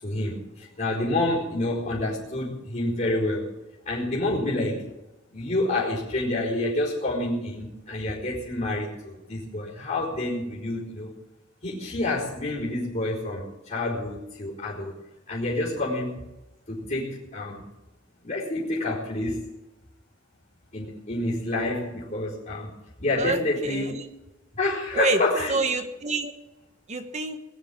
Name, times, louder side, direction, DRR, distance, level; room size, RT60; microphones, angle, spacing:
voice 1, 0.0-3.5 3.8-4.8 5.3-11.1 11.6-15.0 15.3-16.2 16.7-17.6 18.2-19.4 20.7-22.7 23.0-24.0 24.5-25.6, left 2 dB, 40° left, -9 dB, 4.8 m, -28 dB
voice 2, 23.2-24.0 24.9-25.2 25.5-26.3 26.9-27.4, right 3 dB, 35° right, 6 dB, 1.4 m, -27 dB
21.0 x 7.0 x 8.6 m, 1.0 s
head